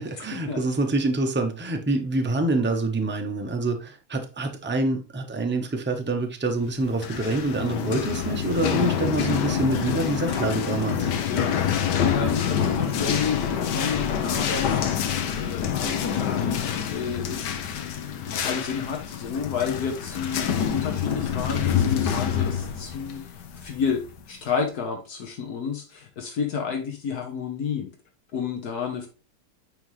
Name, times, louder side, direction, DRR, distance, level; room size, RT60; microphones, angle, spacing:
voice 1, 0.0-11.1, right 2 dB, 15° right, 0.3 m, -26 dB
sound 1, 6.8-24.2, left 8 dB, 85° left, 1.4 m, -27 dB
voice 2, 11.2-16.4 16.9-27.9 28.3-29.1, left 6 dB, 65° left, 1.5 m, -31 dB
9.0 x 3.7 x 3.1 m
omnidirectional pair, 1.8 m